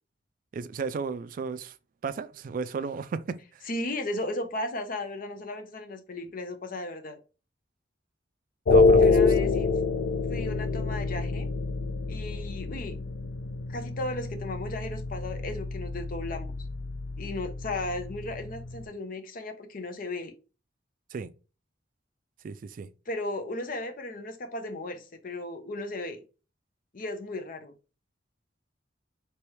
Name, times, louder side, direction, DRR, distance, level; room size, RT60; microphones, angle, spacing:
voice 1, 0.5-1.7 2.0-3.4 8.7-9.3 21.1-21.3 22.4-22.9, right 5 dB, 50° right, 0.3 m, -34 dB
voice 2, 3.6-7.2 9.0-9.7 10.3-11.5 12.1-13.0 13.7-16.5 17.2-20.3 23.1-26.2 26.9-27.7, left 2 dB, 50° left, 0.8 m, -35 dB
sound 1, 8.7-18.9, left 3 dB, 80° left, 0.4 m, -27 dB
4.7 x 3.0 x 3.2 m
head